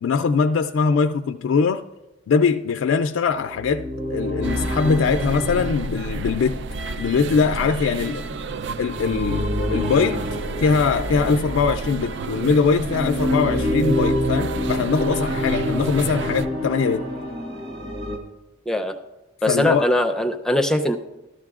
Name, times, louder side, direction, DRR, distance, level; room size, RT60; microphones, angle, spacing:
voice 1, 0.0-1.8 2.3-6.7 7.0-8.2 8.8-10.3 10.6-17.1 19.5-19.9, left 5 dB, 90° left, 0.3 m, -22 dB
sound 1, 3.4-11.9 12.5-18.2, left 1 dB, 30° right, 1.5 m, -28 dB
sound 2, 4.4-16.5, right 4 dB, 60° right, 0.4 m, -30 dB
voice 2, 18.7-19.0 19.4-21.0, left 1 dB, 5° left, 0.5 m, -21 dB
13.0 x 13.0 x 2.4 m
head